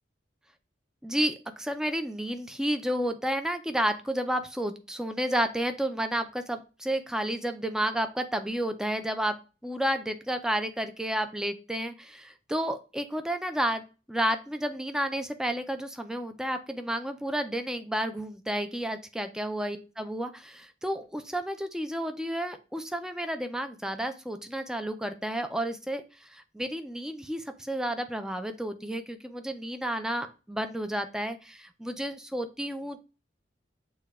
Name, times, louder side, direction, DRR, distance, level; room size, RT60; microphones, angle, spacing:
voice 1, 1.0-9.3 9.6-33.0, right 1 dB, 5° right, 8 dB, 0.3 m, -31 dB
6.6 x 2.2 x 3.4 m, 0.33 s
head